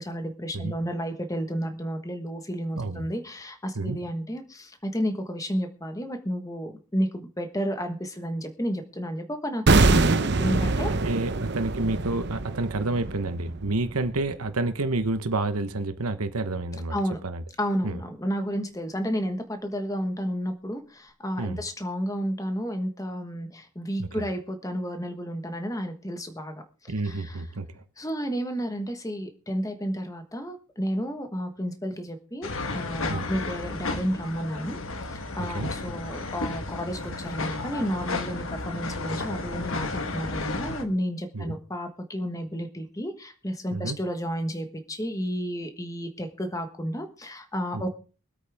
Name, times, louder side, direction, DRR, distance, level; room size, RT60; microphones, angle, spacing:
voice 1, 0.0-10.9 16.9-17.2 17.6-27.4 28.0-34.8 35.1-47.9, equal, 15° left, 1.3 m, -31 dB
voice 2, 2.7-3.1 3.7-4.0 10.9-16.9 17.2-17.4 17.8-18.0 21.4-21.6 24.0-24.2 26.9-27.8 33.1-33.3 35.4-35.7 41.3-41.6 43.7-44.0 47.7-47.8, right 2 dB, 85° right, 1.1 m, -29 dB
sound 1, 9.7-14.7 14.9-15.1, right 3 dB, 50° right, 0.8 m, -24 dB
sound 2, 32.4-40.8, left 3 dB, 65° left, 1.4 m, -33 dB
23.5 x 8.5 x 3.5 m
head